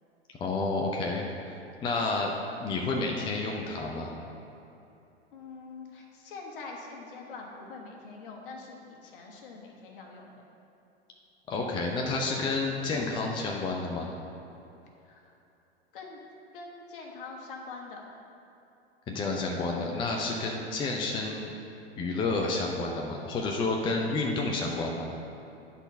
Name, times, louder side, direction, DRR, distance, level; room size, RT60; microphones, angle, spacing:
voice 1, 0.4-2.3 2.6-4.1 11.5-14.1 19.1-21.5 22.0-25.1, left 3 dB, 15° left, 0 dB, 0.6 m, -30 dB
voice 2, 5.3-10.3 15.0-15.3 15.9-16.2 16.5-18.0, left 4 dB, 55° left, 0 dB, 1.4 m, -44 dB
9.9 x 4.2 x 5.6 m, 2.9 s
figure-of-eight pair, 90°, 32 cm